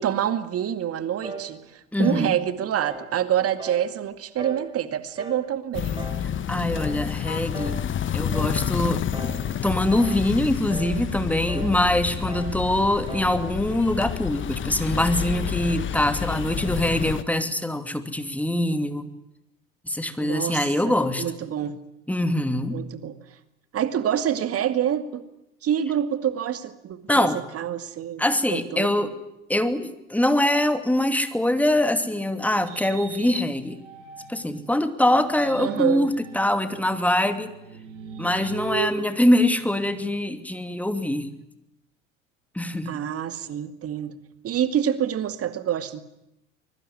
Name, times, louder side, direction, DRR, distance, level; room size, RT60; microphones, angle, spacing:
voice 1, 0.0-6.0 20.2-21.8 22.7-23.1 23.7-25.3 25.6-28.2 28.5-29.0 35.6-36.1 42.9-44.1 44.4-46.0, right 10 dB, 35° right, 11 dB, 2.2 m, -27 dB
sound 1, 1.2-1.5 2.0-2.3 2.8-3.1 3.6-3.9 4.4-4.7 5.2-5.5 6.0-6.3 6.8-7.0 7.5-7.9 8.3-8.6 9.1-9.4 9.9-10.3 10.7-11.0 11.5-11.8 12.3-12.6 13.1-13.4, right 3 dB, 10° right, 6.1 m, -37 dB
voice 2, 1.9-2.3 6.5-7.8 8.1-9.0 9.6-19.1 19.8-21.2 22.1-22.8 27.1-27.4 28.2-29.2 29.5-33.8 34.3-37.5 38.2-41.3 42.5-43.0, left 1 dB, 5° left, 9 dB, 2.7 m, -23 dB
sound 2, 5.7-17.2, left 9 dB, 30° left, 1.6 m, -29 dB
sound 3, 31.4-34.6 35.1-40.3, right 5 dB, 65° right, 6.8 m, -38 dB
24.5 x 22.5 x 9.8 m, 0.88 s
figure-of-eight pair, 70°, 39 cm